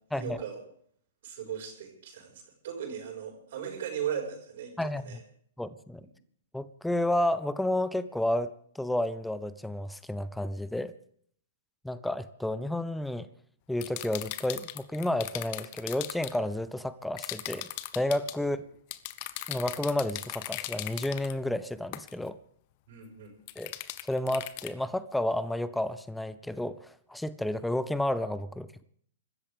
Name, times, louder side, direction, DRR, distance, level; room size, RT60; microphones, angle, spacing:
voice 1, 0.1-0.6 1.2-5.2 22.9-23.3, right 8 dB, 55° right, 1 dB, 5.5 m, -37 dB
voice 2, 4.8-5.2 5.6-6.0 6.5-10.9 11.8-13.3 13.7-17.7 17.9-18.6 19.5-22.4 23.6-23.7 24.1-28.8, left 1 dB, 5° left, 15 dB, 0.6 m, -31 dB
sound 1, 13.8-16.4 17.2-18.4 18.9-21.3 21.9-22.1 23.5-24.7, left 16 dB, 45° left, 1.0 m, -38 dB
25.0 x 13.5 x 3.6 m, 0.62 s
hypercardioid pair, 120°, 0 cm